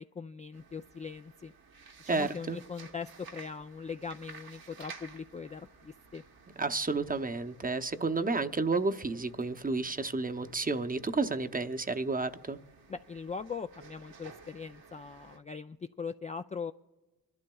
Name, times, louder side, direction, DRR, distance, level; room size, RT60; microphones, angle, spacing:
voice 1, 0.0-1.5 2.0-6.2 12.9-16.7, left 5 dB, 20° left, 8 dB, 0.3 m, -40 dB
sound 1, 0.5-15.4, right 5 dB, 65° right, 1.2 m, -54 dB
voice 2, 2.1-2.6 6.6-12.6, right 3 dB, 20° right, 8 dB, 0.8 m, -31 dB
25.5 x 12.0 x 2.3 m, 1.2 s
supercardioid pair, 45°, 39 cm